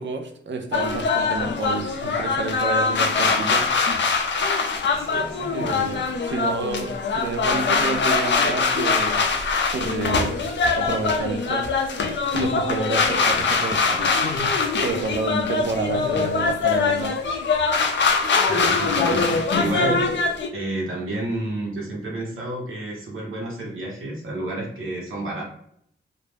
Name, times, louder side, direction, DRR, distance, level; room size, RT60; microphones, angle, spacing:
voice 1, 0.0-3.7 5.5-11.6 12.3-14.1 14.8-17.1, right 3 dB, 65° right, 5 dB, 0.5 m, -29 dB
sound 1, 0.7-20.5, left 4 dB, 65° left, 0.4 m, -23 dB
voice 2, 4.9-6.0 18.4-20.1 20.5-25.4, right 2 dB, 85° right, -3 dB, 1.0 m, -30 dB
2.5 x 2.0 x 3.1 m, 0.69 s
wide cardioid pair, 90°, 20 cm